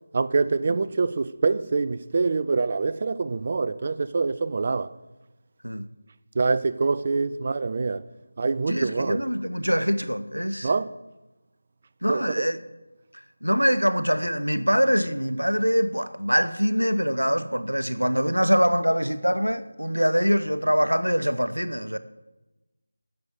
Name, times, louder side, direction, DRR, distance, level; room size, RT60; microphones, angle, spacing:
voice 1, 0.1-4.9 6.4-8.0 8.4-9.3 10.6-10.9 12.1-12.5, right 4 dB, 35° right, 0.4 m, -25 dB
voice 2, 8.7-10.7 12.0-12.6 13.4-22.0, equal, 90° right, 0.8 m, -24 dB
9.7 x 6.9 x 8.3 m
figure-of-eight pair, 165°, 0 cm